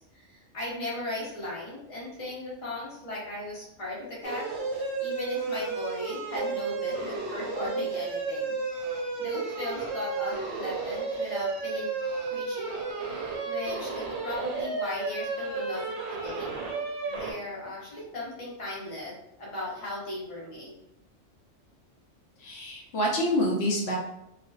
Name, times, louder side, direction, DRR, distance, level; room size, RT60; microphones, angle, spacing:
voice 1, 0.0-11.9 12.3-12.7 13.1-15.8 16.1-16.5 17.1-20.7, left 1 dB, 35° left, -6 dB, 0.7 m, -37 dB
sound 1, 4.2-17.3, right 4 dB, 70° right, 0.8 m, -32 dB
voice 2, 22.4-24.0, equal, 65° left, -1 dB, 0.8 m, -27 dB
2.4 x 2.2 x 2.3 m, 0.82 s
omnidirectional pair, 1.3 m